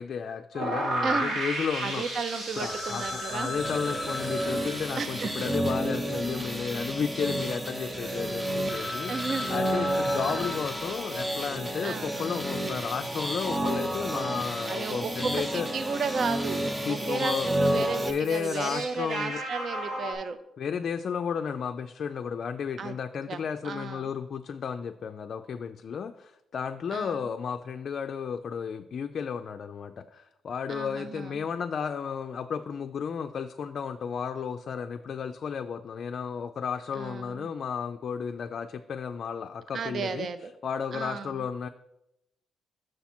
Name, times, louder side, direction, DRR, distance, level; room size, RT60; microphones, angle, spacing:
voice 1, 0.0-2.0 2.6-15.7 16.8-19.4 20.6-40.3 40.6-41.7, left 6 dB, 55° left, 6 dB, 0.3 m, -33 dB
sound 1, 0.5-20.1, right 1 dB, 85° right, 2.5 m, -38 dB
voice 2, 1.0-1.5 1.8-3.6 5.0-5.4 9.1-9.6 10.3-10.5 11.8-12.2 14.7-16.6 16.9-20.4 22.8-22.9 23.3-24.1 26.9-27.3 30.7-31.4 36.9-37.5 39.7-40.5 40.9-41.4, right 5 dB, 55° right, 11 dB, 0.5 m, -34 dB
Telephone, 2.7-7.0 7.3-7.4 7.9-8.0 8.4-8.5 8.7-11.6, left 2 dB, 25° left, 1.0 m, -38 dB
sound 2, 3.6-18.1, right 1 dB, 15° right, 0.8 m, -31 dB
6.4 x 5.8 x 4.3 m, 0.85 s
cardioid pair, 90°, 0 cm